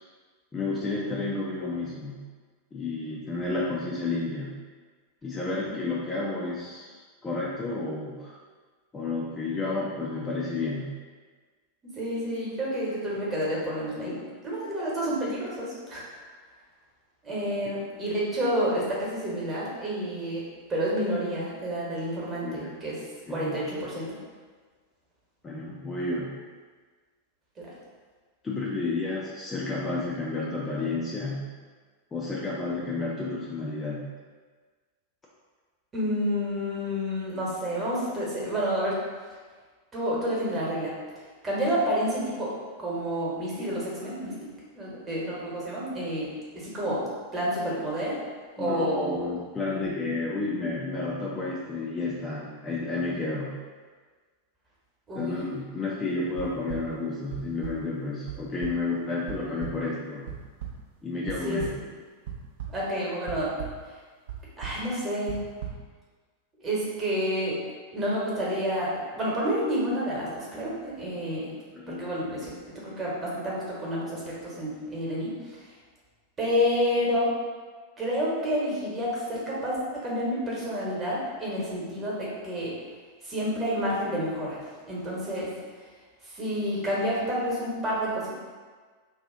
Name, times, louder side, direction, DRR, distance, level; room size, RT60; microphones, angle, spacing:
voice 1, 0.5-2.2 2.7-4.6 5.2-6.9 7.2-8.4 8.9-10.9 22.4-22.7 23.3-23.6 25.4-26.4 28.4-31.5 32.1-34.1 48.6-53.6 55.1-60.3 61.0-61.7 71.7-72.1, left 3 dB, 15° left, -5 dB, 0.4 m, -31 dB
voice 2, 11.9-14.1 14.4-16.1 17.2-20.4 20.7-23.0 23.3-24.2 27.6-27.7 35.9-39.0 39.9-40.9 41.4-42.5 42.8-44.3 44.7-47.0 47.3-48.2 48.6-49.2 49.6-50.1 55.1-55.4 61.4-61.6 62.7-63.5 64.6-65.4 66.6-67.6 67.9-71.5 71.9-75.6 76.4-77.3 78.0-82.7 83.2-84.6 84.9-85.5 86.2-88.3, equal, 20° right, -6 dB, 1.2 m, -29 dB
sound 1, 56.4-56.8 57.3-57.7 58.3-58.4 58.6-58.7 59.3-59.4 59.6-59.7 60.3-60.7 61.3-61.7 62.3-62.8 63.3-63.7 64.3-64.4 64.6-64.8 65.3-65.7, right 11 dB, 60° right, 0.5 m, -35 dB
2.8 x 2.4 x 3.6 m, 1.5 s
figure-of-eight pair, 90°, 0 cm